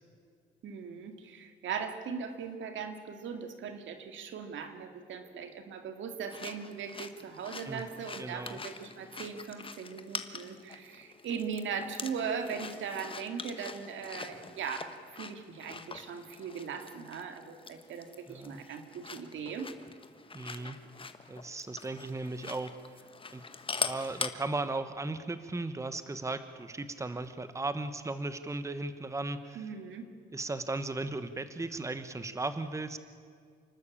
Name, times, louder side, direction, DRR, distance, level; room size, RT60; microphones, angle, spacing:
voice 1, 0.6-19.7 29.5-30.1, right 6 dB, 75° right, 7 dB, 2.2 m, -39 dB
sound 1, 6.3-24.3, left 4 dB, 25° left, 1.3 m, -43 dB
voice 2, 8.2-8.6 18.3-18.6 20.3-20.8 21.3-23.0 23.3-23.4 23.8-29.7 30.3-33.0, right 2 dB, 15° right, 11 dB, 1.1 m, -36 dB
28.5 x 12.5 x 8.6 m, 2.1 s
cardioid pair, 90°, 20 cm